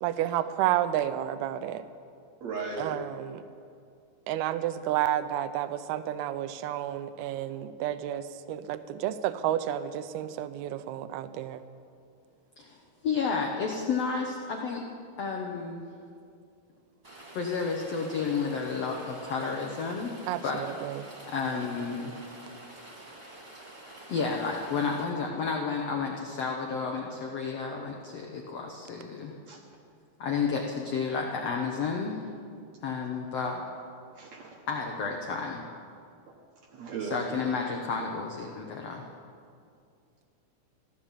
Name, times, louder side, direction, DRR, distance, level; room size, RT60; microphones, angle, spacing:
voice 1, 0.0-1.8 2.8-3.4 4.3-11.6 20.3-21.0, right 12 dB, 85° right, 12 dB, 2.6 m, -31 dB
voice 2, 2.4-3.0 21.6-21.8 29.5-29.6 34.2-34.6 35.7-35.8 36.7-37.3, right 4 dB, 60° right, 0 dB, 2.0 m, -37 dB
voice 3, 13.0-14.8 15.2-15.8 17.3-20.1 20.4-20.6 21.3-22.1 24.1-29.4 30.2-32.3 32.8-33.6 34.7-35.6 37.0-39.1, left 5 dB, 85° left, 1 dB, 1.4 m, -31 dB
Rain, 17.0-25.0, right 1 dB, 15° right, 2.5 m, -48 dB
15.0 x 12.5 x 7.4 m, 2.4 s
omnidirectional pair, 4.5 m